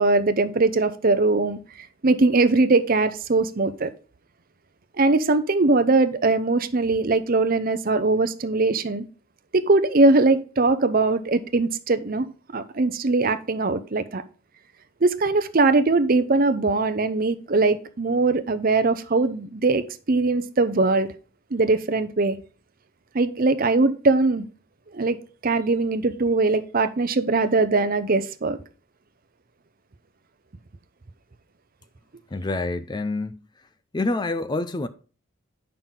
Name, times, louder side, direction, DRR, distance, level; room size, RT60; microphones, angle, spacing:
voice 1, 0.0-3.9 5.0-9.0 9.5-12.3 12.5-14.2 15.0-21.1 21.5-22.4 23.1-24.4 24.9-25.2 25.4-28.6, right 3 dB, 40° right, 0.6 m, -21 dB
voice 2, 32.3-33.7 33.9-34.9, left 2 dB, 20° left, 0.4 m, -27 dB
8.9 x 5.9 x 3.7 m
head